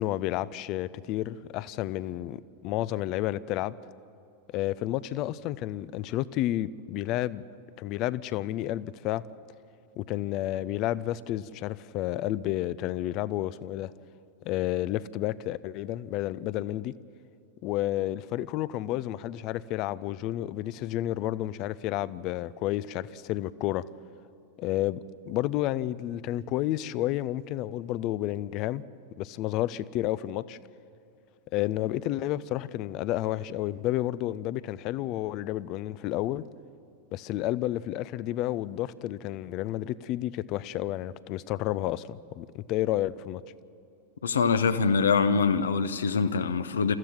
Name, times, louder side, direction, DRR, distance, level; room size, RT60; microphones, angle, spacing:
voice 1, 0.0-3.7 4.5-7.5 7.8-9.2 10.0-13.9 14.4-16.9 17.6-23.8 24.6-28.8 29.2-30.6 31.5-36.4 37.1-43.4, left 14 dB, 40° left, 0.6 m, -31 dB
voice 2, 44.2-46.9, left 5 dB, 70° left, 1.0 m, -24 dB
29.0 x 14.5 x 7.7 m
figure-of-eight pair, 90°, 0 cm